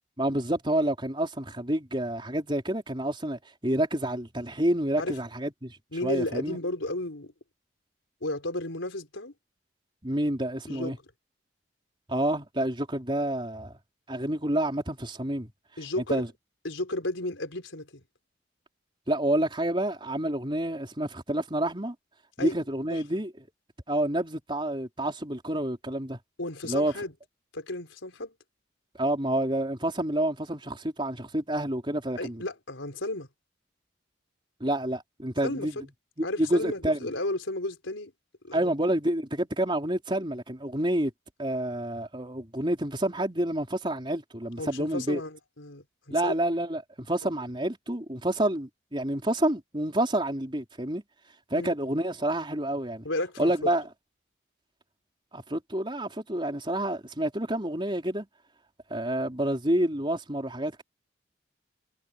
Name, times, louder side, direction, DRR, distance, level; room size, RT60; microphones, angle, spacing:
voice 1, 0.2-6.6 10.0-11.0 12.1-13.7 14.1-15.5 16.0-16.3 19.1-21.9 22.4-23.3 23.9-26.2 26.6-26.9 29.0-32.4 34.6-35.8 36.2-37.0 38.5-41.1 41.4-45.2 46.1-51.0 51.5-53.1 53.4-53.8 55.3-58.3 58.9-60.8, right 1 dB, 25° right, 4.1 m, -28 dB
voice 2, 5.9-7.3 8.2-9.3 10.7-11.0 15.8-16.2 16.6-18.0 22.4-22.5 22.9-23.0 26.4-27.1 27.5-28.3 32.2-33.3 35.4-35.8 36.2-38.1 38.4-38.7 44.6-46.3 51.5-51.7 53.0-53.7, left 2 dB, 85° left, 4.6 m, -33 dB
head